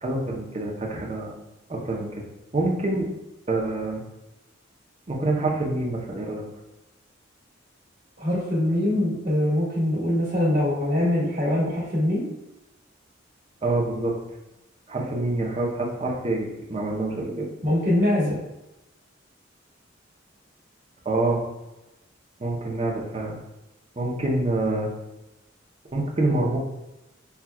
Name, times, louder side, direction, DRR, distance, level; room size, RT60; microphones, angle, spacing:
voice 1, 0.0-1.3 1.7-2.2 2.5-3.1 3.5-4.0 5.1-6.4 13.6-14.2 14.9-17.5 21.0-21.4 22.4-23.4 24.0-24.9 25.9-26.6, right 2 dB, 35° right, -2 dB, 0.7 m, -26 dB
voice 2, 8.2-12.3 17.6-18.4, left 1 dB, 55° right, -8 dB, 1.5 m, -23 dB
5.7 x 2.3 x 2.3 m, 0.94 s
head